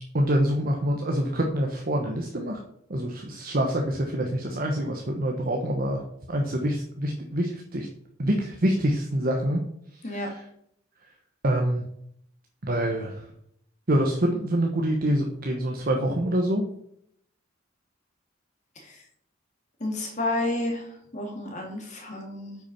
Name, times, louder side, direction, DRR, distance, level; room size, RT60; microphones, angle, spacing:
voice 1, 0.1-2.6 2.9-6.0 6.3-7.9 8.2-9.6 9.9-10.4 11.4-11.8 12.6-13.3 13.9-16.6, right 1 dB, 50° right, 2 dB, 1.1 m, -26 dB
voice 2, 19.8-22.6, left 2 dB, 40° left, 1 dB, 2.6 m, -31 dB
8.8 x 6.1 x 5.5 m, 0.71 s
head